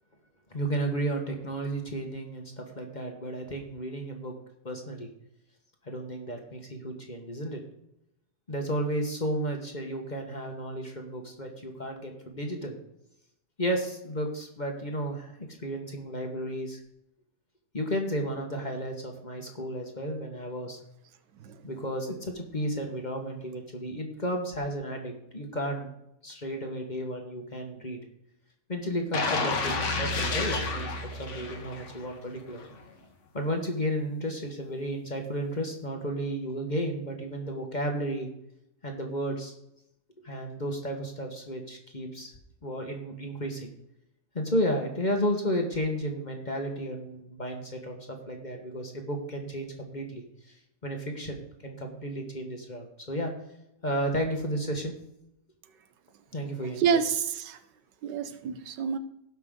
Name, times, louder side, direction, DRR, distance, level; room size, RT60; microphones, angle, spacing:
voice 1, 0.5-4.3 4.6-5.1 5.8-7.6 8.5-12.8 13.6-16.8 17.7-20.8 21.6-25.9 26.2-28.0 28.7-30.9 31.2-32.6 33.3-38.3 38.8-39.5 40.2-42.3 42.6-43.7 44.3-50.2 50.8-53.3 53.8-54.9 56.3-57.0, equal, 30° left, 2 dB, 1.3 m, -33 dB
sound 1, 29.1-32.1 32.5-32.7, left 3 dB, 50° left, 1.4 m, -30 dB
voice 2, 56.8-57.6 58.0-59.0, right 7 dB, 90° right, 11 dB, 1.4 m, -28 dB
17.5 x 5.8 x 3.7 m, 0.81 s
omnidirectional pair, 1.8 m